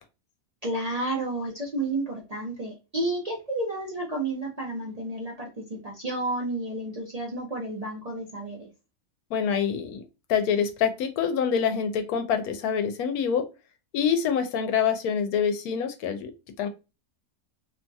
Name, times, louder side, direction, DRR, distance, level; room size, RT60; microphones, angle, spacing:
voice 1, 0.6-8.7, right 2 dB, 60° right, -2 dB, 0.4 m, -31 dB
voice 2, 9.3-13.4 13.9-16.3 16.6-16.7, left 7 dB, 85° left, 8 dB, 1.1 m, -26 dB
2.8 x 2.6 x 2.3 m, 0.28 s
omnidirectional pair, 1.5 m